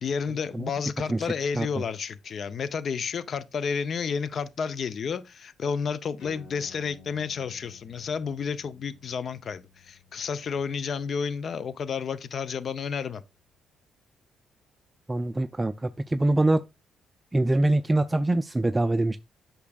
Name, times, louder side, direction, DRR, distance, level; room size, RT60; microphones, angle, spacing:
voice 1, 0.0-13.2, left 6 dB, 50° left, 0.6 m, -31 dB
sound 1, 6.2-13.1, left 4 dB, 85° left, 3.7 m, -54 dB
voice 2, 15.1-16.6 17.3-19.2, right 2 dB, 15° right, 0.4 m, -24 dB
8.3 x 6.0 x 2.3 m
cardioid pair, 90°, 0 cm